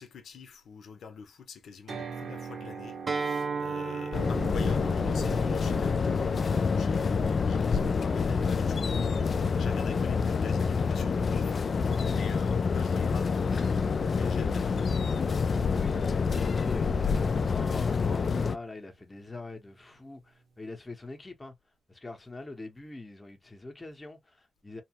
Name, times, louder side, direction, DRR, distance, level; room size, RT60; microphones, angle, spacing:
voice 1, 0.0-15.0, left 6 dB, 80° left, 0.7 m, -44 dB
sound 1, 1.9-16.0, right 5 dB, 65° right, 0.9 m, -46 dB
Acoustic guitar, 3.1-8.3, right 4 dB, 40° right, 0.4 m, -37 dB
sound 2, 4.1-18.6, left 5 dB, 50° left, 0.3 m, -27 dB
voice 2, 15.7-21.5 21.9-24.8, left 2 dB, 20° left, 0.8 m, -44 dB
2.8 x 2.1 x 2.8 m
cardioid pair, 95°, 0 cm